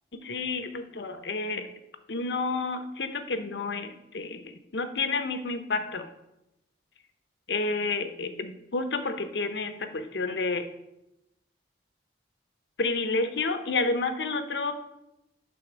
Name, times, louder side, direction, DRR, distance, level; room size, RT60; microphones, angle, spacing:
voice 1, 0.1-1.7 2.1-6.1 7.5-10.7 12.8-14.7, left 3 dB, 70° left, 8 dB, 0.8 m, -30 dB
9.9 x 3.8 x 6.1 m, 0.92 s
head